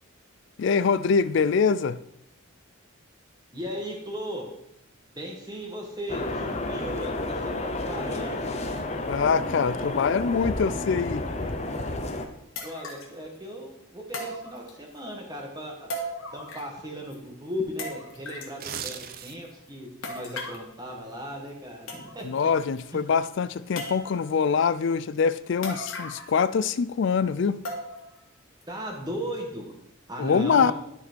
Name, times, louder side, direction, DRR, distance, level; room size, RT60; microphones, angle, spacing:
voice 1, 0.6-2.0 9.1-11.2 22.2-27.6 30.2-30.7, left 5 dB, 55° left, 15 dB, 0.3 m, -24 dB
voice 2, 3.5-4.5 5.1-8.5 12.6-15.9 16.3-22.2 22.9-23.0 28.7-29.7 30.1-30.7, equal, 20° right, 0 dB, 1.6 m, -36 dB
sound 1, 6.1-12.2, left 2 dB, 30° left, 0.7 m, -31 dB
sound 2, 11.7-11.8 12.6-13.2 14.1-15.0 15.9-16.8 17.1-17.2 17.8-18.6 20.0-20.7 21.5-21.6 21.9-22.4 22.8-22.9 23.8-24.3 25.6-26.4 26.7-26.8 27.7-28.2 28.6-28.7 29.3-29.4, left 1 dB, 75° left, 1.6 m, -37 dB
sound 3, 18.5-19.6 20.0-20.2, right 8 dB, 45° right, 0.5 m, -37 dB
12.5 x 4.2 x 4.5 m, 0.81 s
head